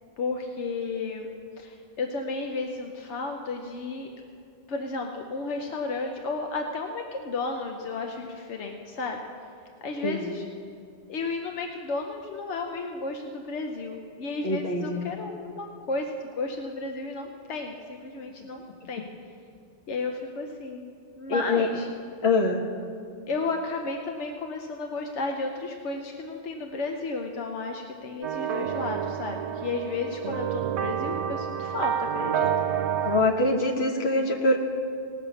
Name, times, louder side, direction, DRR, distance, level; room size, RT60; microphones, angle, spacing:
voice 1, 0.2-1.3 1.6-4.1 4.7-9.2 9.8-10.4 11.1-19.1 19.9-21.9 23.3-32.5, left 3 dB, 90° left, 3 dB, 1.1 m, -33 dB
voice 2, 14.4-15.0 21.3-21.7 22.2-22.6 33.0-34.6, left 2 dB, 70° left, 1 dB, 1.5 m, -24 dB
sound 1, 28.2-33.2, right 8 dB, 85° right, 0.9 m, -29 dB
18.5 x 6.6 x 7.0 m, 2.4 s
omnidirectional pair, 1.1 m